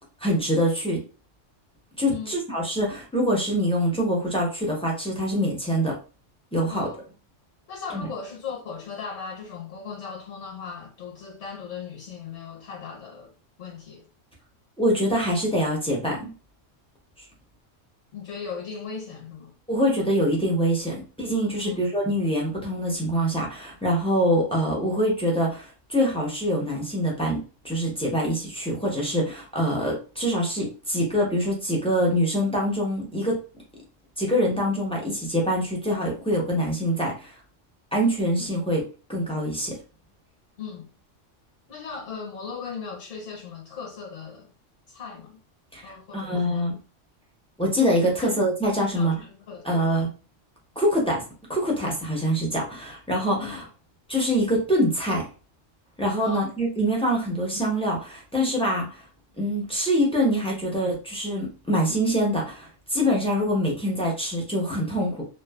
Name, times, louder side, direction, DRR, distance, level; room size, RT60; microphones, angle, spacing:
voice 1, 0.2-1.0 2.0-5.9 6.5-6.9 7.9-8.1 14.8-16.3 19.7-33.4 34.2-37.3 37.9-38.8 39.1-39.8 45.7-46.8 47.6-49.1 49.6-50.1 50.8-51.2 51.5-53.7 54.1-55.3 56.0-59.0 59.4-65.2, equal, 10° left, 0.3 m, -24 dB
voice 2, 6.7-7.0 7.7-13.3 13.6-14.0 18.1-19.5 21.6-21.9 38.5-38.7 40.6-40.9 41.7-44.5 44.9-45.4 45.8-46.6 48.0-48.3 48.8-49.8 53.4-53.6 56.2-56.5, left 5 dB, 70° left, 1.0 m, -38 dB
2.9 x 2.0 x 2.2 m
omnidirectional pair, 1.3 m